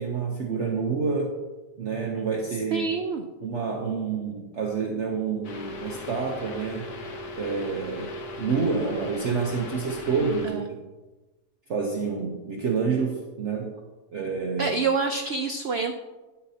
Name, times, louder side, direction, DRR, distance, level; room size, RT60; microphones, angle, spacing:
voice 1, 0.0-1.3 1.8-2.9 3.4-6.9 7.3-8.1 8.4-10.8 11.7-13.7 14.1-14.8, right 5 dB, 55° right, 0 dB, 1.0 m, -28 dB
voice 2, 2.7-3.2 10.4-10.7 14.6-15.9, right 4 dB, 85° right, 5 dB, 0.5 m, -27 dB
sound 1, 5.4-10.5, left 1 dB, 85° left, 1.6 m, -37 dB
9.3 x 8.2 x 2.7 m, 1.2 s
omnidirectional pair, 1.7 m